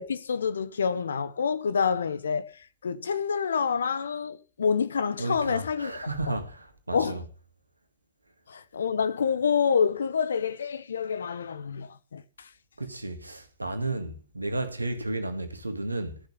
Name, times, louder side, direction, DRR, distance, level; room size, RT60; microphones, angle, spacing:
voice 1, 0.0-2.5 2.8-5.9 6.3-6.4 6.9-7.2 8.5-12.2, left 6 dB, 75° left, 1.2 m, -27 dB
voice 2, 5.2-7.2 12.8-16.2, right 2 dB, 90° right, 2.0 m, -33 dB
14.0 x 6.8 x 7.2 m
figure-of-eight pair, 100°, 0 cm